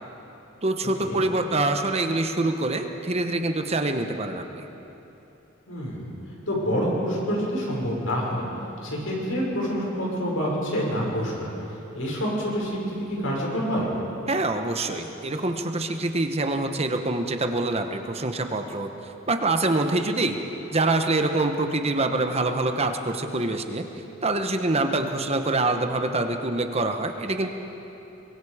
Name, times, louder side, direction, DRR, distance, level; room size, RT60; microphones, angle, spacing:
voice 1, 0.6-4.7 14.3-18.9 19.3-20.4 20.7-23.9 24.2-27.5, right 2 dB, 30° right, 6 dB, 1.1 m, -25 dB
voice 2, 5.7-6.1 6.5-8.5 8.8-11.5 11.9-13.9, equal, 85° left, -3 dB, 5.9 m, -27 dB
24.0 x 22.5 x 5.0 m, 3.0 s
head